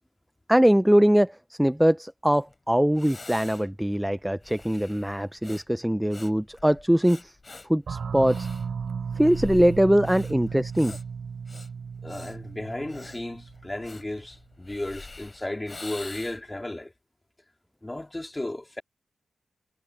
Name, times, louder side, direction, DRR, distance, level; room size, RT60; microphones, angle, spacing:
voice 1, 0.5-7.3 7.7-8.5 9.2-10.9, equal, 5° right, 0.4 m, -22 dB
Breathing, 2.5-2.6 2.9-16.6, left 3 dB, 30° left, 6.5 m, -45 dB
sound 1, 7.9-14.2, right 6 dB, 70° right, 3.3 m, -35 dB
voice 2, 12.0-16.9 17.8-18.8, left 1 dB, 15° left, 3.1 m, -34 dB
wide cardioid pair, 115°, 0 cm